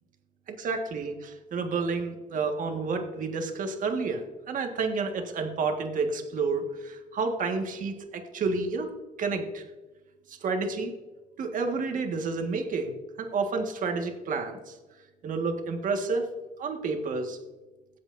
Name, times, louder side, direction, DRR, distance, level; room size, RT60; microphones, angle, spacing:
voice 1, 0.5-8.9 9.2-9.7 10.3-10.9 11.4-14.8 15.2-16.3 16.6-17.4, right 4 dB, 50° right, 4 dB, 1.6 m, -30 dB
22.5 x 7.8 x 2.6 m, 1.2 s
cardioid pair, 110°, 17 cm